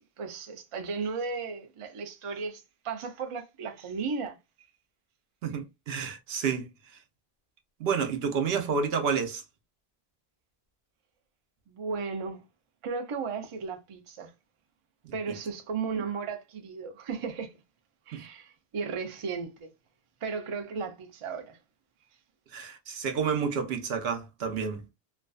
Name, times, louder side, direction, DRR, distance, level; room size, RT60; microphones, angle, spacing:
voice 1, 0.2-4.4 11.7-12.4 12.8-14.3 15.1-17.5 18.1-19.7 20.2-21.6, right 5 dB, 50° right, 0.4 m, -35 dB
voice 2, 5.4-6.7 7.8-9.4 18.1-18.2 22.5-24.8, right 6 dB, 75° right, 0.9 m, -29 dB
2.4 x 2.3 x 2.3 m
omnidirectional pair, 1.1 m